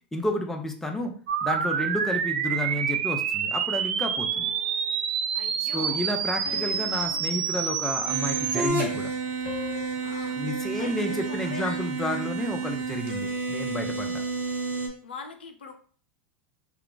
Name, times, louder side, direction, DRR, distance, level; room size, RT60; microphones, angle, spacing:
voice 1, 0.1-1.1 1.4-4.5 5.6-9.1 10.4-14.2, left 1 dB, 5° left, 2 dB, 0.6 m, -31 dB
sound 1, 1.3-8.7, right 7 dB, 70° right, 0.4 m, -28 dB
sound 2, 4.3-5.3 6.5-8.3 9.4-9.9, left 8 dB, 55° left, 0.8 m, -42 dB
voice 2, 5.3-6.0 10.0-11.9 13.6-13.7 15.0-15.7, left 4 dB, 85° left, 5 dB, 0.5 m, -42 dB
sound 3, 8.0-14.9, right 3 dB, 35° right, 1.3 m, -30 dB
2.4 x 2.3 x 3.7 m, 0.43 s
hypercardioid pair, 90°, 5 cm